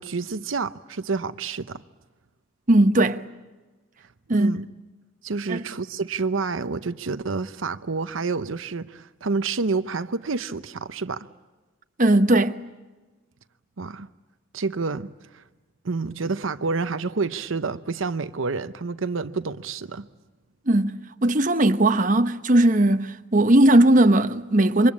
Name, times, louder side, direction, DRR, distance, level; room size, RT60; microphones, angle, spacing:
voice 1, 0.0-1.8 4.3-4.7 5.2-11.3 13.8-14.1 14.5-15.4 15.8-20.1, right 4 dB, 75° right, 0.8 m, -28 dB
voice 2, 2.7-3.2 4.3-4.5 5.5-5.6 12.0-12.6 20.7-24.9, right 1 dB, 40° right, 1.0 m, -18 dB
27.5 x 24.0 x 8.6 m
head